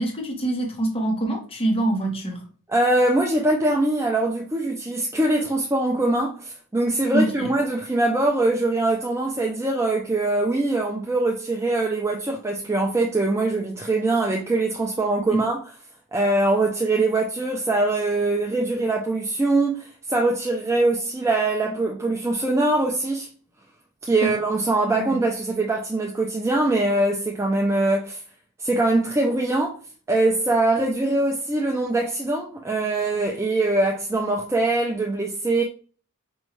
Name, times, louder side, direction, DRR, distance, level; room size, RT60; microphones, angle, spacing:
voice 1, 0.0-2.4 7.1-7.5 15.3-15.4 24.2-24.3 24.9-25.0, right 1 dB, 25° left, 0.9 m, -24 dB
voice 2, 2.7-15.6 16.1-23.3 24.0-28.2 28.6-29.8 30.1-35.6, right 2 dB, 10° right, 0.4 m, -22 dB
5.2 x 2.3 x 3.1 m
head